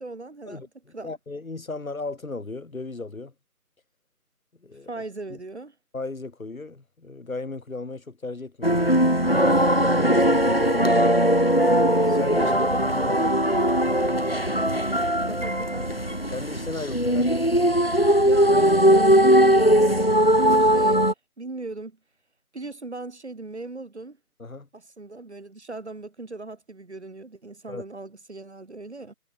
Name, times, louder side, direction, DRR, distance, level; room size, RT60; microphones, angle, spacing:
voice 1, 0.0-0.7 0.9-1.1 4.9-5.7 12.3-13.3 15.3-16.0 18.2-21.1 21.4-22.0 22.5-24.2 24.7-29.1, right 3 dB, 45° right, 1.3 m, -38 dB
voice 2, 1.0-3.3 4.6-4.9 5.3-5.4 5.9-9.0 9.8-10.9 11.7-12.5 12.9-13.2 16.3-17.5 24.4-24.7 27.7-27.8, left 3 dB, 60° left, 3.0 m, -35 dB
sound 1, 8.6-21.1, equal, 40° left, 0.5 m, -20 dB
figure-of-eight pair, 170°, 46 cm